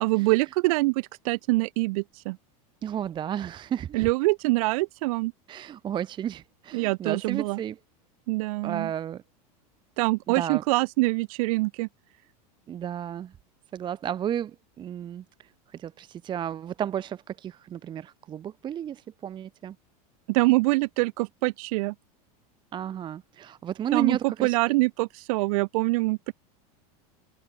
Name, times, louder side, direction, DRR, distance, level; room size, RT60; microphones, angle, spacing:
voice 1, 0.0-2.4 3.9-5.3 6.7-7.6 8.3-8.9 10.0-11.9 20.3-21.9 23.9-26.3, right 23 dB, 70° right, 0.4 m, -25 dB
voice 2, 2.8-4.1 5.5-7.8 8.6-9.2 10.4-10.6 12.7-13.4 13.7-19.8 22.7-24.6, right 10 dB, 25° right, 0.7 m, -33 dB
supercardioid pair, 135°, 19 cm